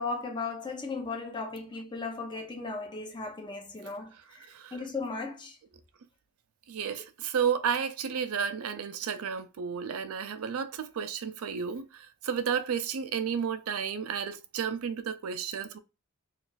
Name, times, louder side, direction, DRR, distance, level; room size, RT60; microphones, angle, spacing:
voice 1, 0.0-5.6, left 3 dB, 20° left, 0.6 m, -36 dB
voice 2, 6.7-15.8, right 7 dB, 75° right, 0.4 m, -32 dB
2.4 x 2.4 x 3.8 m
head